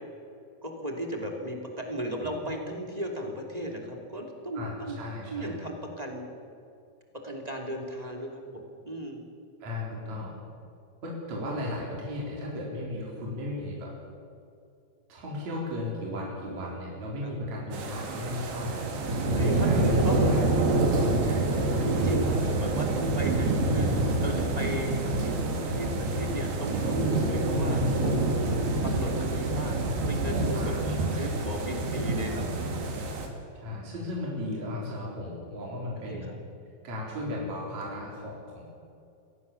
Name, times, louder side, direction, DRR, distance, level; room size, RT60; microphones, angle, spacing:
voice 1, 0.6-5.0 5.3-6.2 7.2-9.2 17.2-17.3 19.3-20.6 21.2-25.3 25.7-28.3 28.8-30.7 31.1-32.9 36.0-36.4, right 1 dB, 10° right, 1 dB, 2.3 m, -36 dB
voice 2, 4.6-5.6 9.6-10.3 11.0-13.9 15.1-18.8 19.5-20.5 21.7-22.0 30.5-31.3 33.5-36.3 36.8-38.6, left 1 dB, 45° right, -3 dB, 5.2 m, -36 dB
sound 1, 17.7-33.3, right 2 dB, 80° right, 4.6 m, -27 dB
24.5 x 17.0 x 7.1 m, 2.5 s
omnidirectional pair, 4.4 m